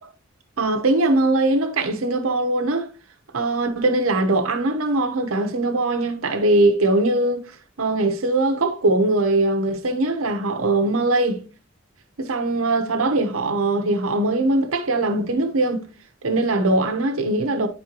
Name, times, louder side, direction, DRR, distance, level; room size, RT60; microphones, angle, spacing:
voice 1, 0.6-2.9 3.3-11.4 12.2-15.8 16.2-17.7, right 2 dB, 80° right, 0.9 m, -21 dB
9.6 x 4.4 x 2.9 m
head